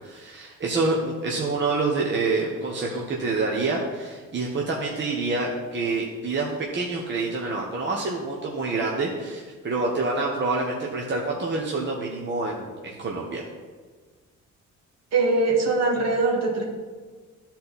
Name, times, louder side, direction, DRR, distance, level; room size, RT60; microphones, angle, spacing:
voice 1, 0.0-13.5, right 3 dB, 40° right, -2 dB, 1.2 m, -27 dB
voice 2, 15.1-16.6, right 3 dB, 60° right, -2 dB, 2.0 m, -22 dB
12.0 x 4.3 x 4.1 m, 1.5 s
cardioid pair, 90°, 30 cm